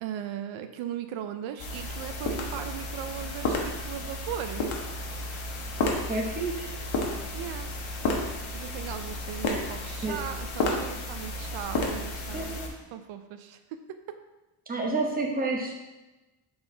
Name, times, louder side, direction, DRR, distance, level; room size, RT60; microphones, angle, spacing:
voice 1, 0.0-4.7 7.3-7.7 8.5-12.6 12.9-13.6 13.9-14.2, right 10 dB, 85° right, 8 dB, 0.6 m, -38 dB
sound 1, 1.6-12.7, left 2 dB, 85° left, 1.2 m, -32 dB
voice 2, 5.8-6.7 10.0-10.2 12.3-12.7 14.7-15.7, right 3 dB, 20° right, 0 dB, 0.9 m, -30 dB
7.0 x 4.0 x 3.8 m, 1.1 s
cardioid pair, 150°, 46 cm